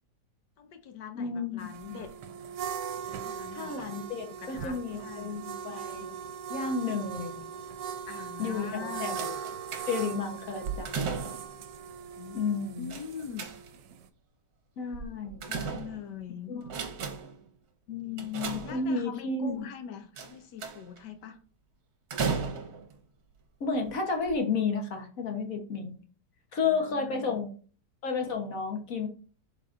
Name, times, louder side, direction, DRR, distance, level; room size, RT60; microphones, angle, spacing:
voice 1, 0.6-2.1 3.2-4.0 4.2-5.3 8.1-9.2 12.2-13.5 15.4-16.5 18.0-21.4 26.5-27.4, left 8 dB, 80° left, 1.4 m, -43 dB
voice 2, 1.1-1.7 3.5-6.2 6.5-7.4 8.4-9.3 9.9-11.3 12.3-12.9 14.8-15.5 16.5-16.6 17.9-19.6 23.6-26.0 26.5-27.5 28.0-29.1, left 4 dB, 55° left, 1.4 m, -32 dB
sound 1, 1.6-14.0, right 7 dB, 85° right, 1.2 m, -40 dB
sound 2, 9.2-10.2 10.6-11.6 12.9-13.9 14.9-16.2 16.6-17.4 18.2-19.2 20.2-21.0 22.1-22.9 23.8-23.9 24.2-24.3, right 5 dB, 65° right, 1.4 m, -35 dB
11.5 x 4.0 x 2.5 m
omnidirectional pair, 1.8 m